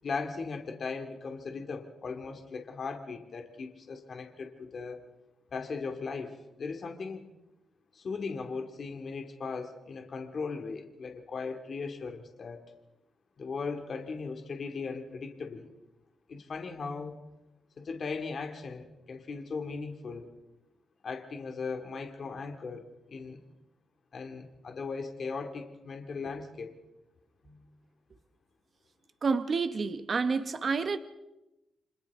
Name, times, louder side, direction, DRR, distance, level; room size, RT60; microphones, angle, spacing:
voice 1, 0.0-5.0 5.5-7.2 7.9-12.6 13.4-15.7 16.3-17.2 17.8-20.3 21.0-23.4 24.1-26.7 27.4-27.7, left 4 dB, 50° left, 5 dB, 2.3 m, -38 dB
voice 2, 29.2-31.0, right 4 dB, 40° right, 10 dB, 0.9 m, -29 dB
29.5 x 26.0 x 3.6 m, 0.98 s
cardioid pair, 115°, 0 cm